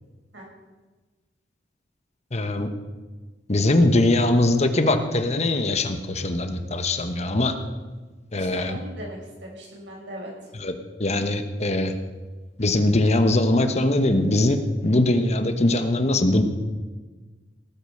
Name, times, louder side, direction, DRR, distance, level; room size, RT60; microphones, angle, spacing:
voice 1, 2.3-2.7 3.5-7.5 8.3-8.8 10.5-10.7 11.0-11.9 12.6-16.4, left 2 dB, 40° left, 8 dB, 1.2 m, -21 dB
voice 2, 8.3-10.3, right 1 dB, 80° right, -2 dB, 6.2 m, -39 dB
18.5 x 8.9 x 6.6 m, 1.3 s
head